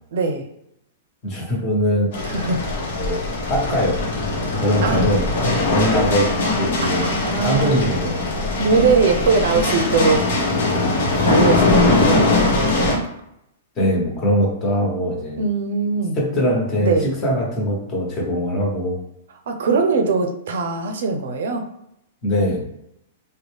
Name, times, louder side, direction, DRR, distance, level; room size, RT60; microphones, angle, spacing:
voice 1, 0.1-0.5 2.2-2.6 4.8-5.1 7.0-7.8 8.6-10.3 11.2-13.1 15.4-16.2 16.8-17.1 19.5-21.6, right 4 dB, 70° right, 5 dB, 0.5 m, -21 dB
voice 2, 1.2-2.1 3.0-3.2 3.5-4.0 4.6-5.2 5.6-7.0 7.4-8.2 13.8-15.4 16.2-19.0 22.2-22.6, equal, 25° left, -3 dB, 1.2 m, -21 dB
sound 1, 2.1-13.0, left 2 dB, 60° left, 1.0 m, -20 dB
3.6 x 2.2 x 3.4 m, 0.79 s
hypercardioid pair, 150°, 0 cm